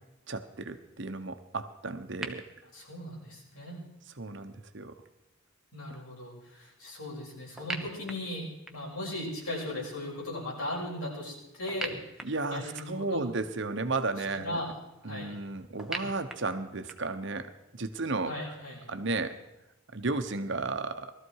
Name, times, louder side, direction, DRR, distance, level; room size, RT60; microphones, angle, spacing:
voice 1, 0.3-2.4 4.2-5.0 12.2-14.6 15.0-18.3 18.9-19.4 19.9-21.1, right 3 dB, 55° right, 8 dB, 1.0 m, -34 dB
sound 1, 2.2-2.3 7.6-9.0 11.7-13.1 15.8-17.2, right 1 dB, ahead, 1.0 m, -40 dB
voice 2, 2.7-3.8 5.7-12.0 12.5-13.2 14.2-14.7 15.0-15.4 18.3-18.9, left 1 dB, 85° left, -4 dB, 7.0 m, -38 dB
20.0 x 13.5 x 4.8 m, 0.91 s
head